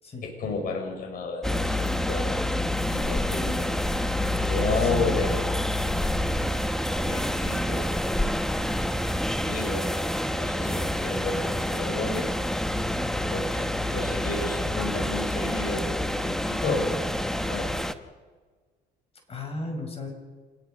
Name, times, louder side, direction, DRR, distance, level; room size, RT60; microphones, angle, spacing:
voice 1, 0.2-2.5 2.9-3.7 4.4-5.4 7.0-7.9 9.4-9.9 10.3-12.3 13.3-17.7, left 3 dB, 55° left, 3 dB, 5.6 m, -32 dB
sound 1, 1.4-17.9, left 1 dB, 5° left, 1.0 m, -27 dB
voice 2, 4.8-5.3 19.3-20.1, left 2 dB, 35° left, 3 dB, 6.5 m, -35 dB
27.0 x 20.0 x 5.4 m, 1.4 s
cardioid pair, 110°, 17 cm